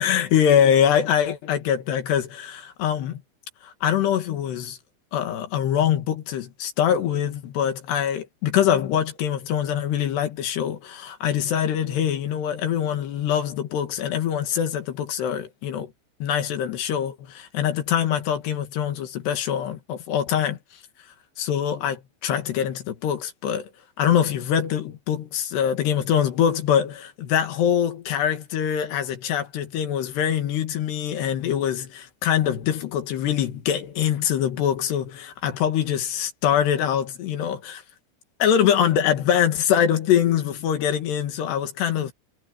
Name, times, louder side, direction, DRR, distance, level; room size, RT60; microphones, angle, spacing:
voice 1, 0.0-3.2 3.6-4.8 5.1-15.9 16.2-20.6 21.4-23.7 24.0-37.8 38.4-42.1, left 9 dB, 70° left, 3.8 m, -23 dB
omnidirectional pair, 5.2 m